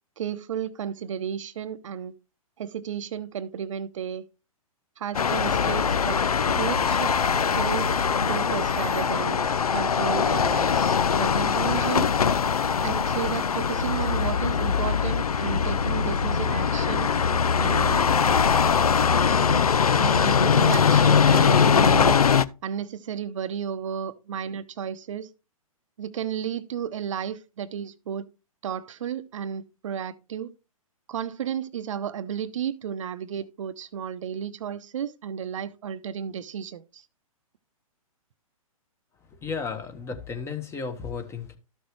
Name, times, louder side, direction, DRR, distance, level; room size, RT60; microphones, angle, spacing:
voice 1, 0.2-2.1 2.6-4.2 5.0-6.2 6.5-7.1 7.5-7.9 8.3-9.4 9.7-12.1 12.8-17.1 17.6-18.1 19.5-22.2 22.6-25.3 26.0-28.3 28.6-30.5 31.1-37.1, right 9 dB, 60° right, 0.8 m, -33 dB
sound 1, 5.1-22.4, left 6 dB, 85° left, 0.6 m, -22 dB
voice 2, 39.4-41.6, left 5 dB, 15° left, 1.4 m, -33 dB
13.0 x 6.2 x 3.2 m
hypercardioid pair, 125°, 18 cm